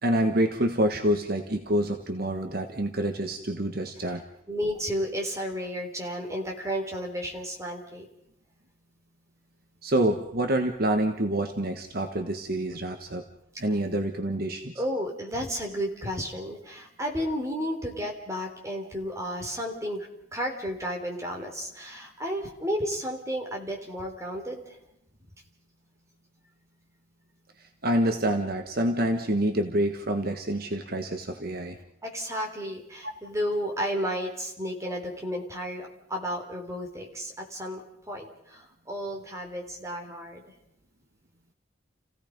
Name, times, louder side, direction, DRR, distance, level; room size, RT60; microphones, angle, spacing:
voice 1, 0.0-4.2 9.8-13.2 13.6-14.7 27.8-31.8, right 1 dB, 50° right, 5 dB, 1.5 m, -27 dB
voice 2, 4.5-8.1 14.8-24.8 32.0-37.8 38.1-40.4, equal, 15° right, 1 dB, 3.7 m, -32 dB
30.0 x 16.5 x 5.3 m, 0.78 s
head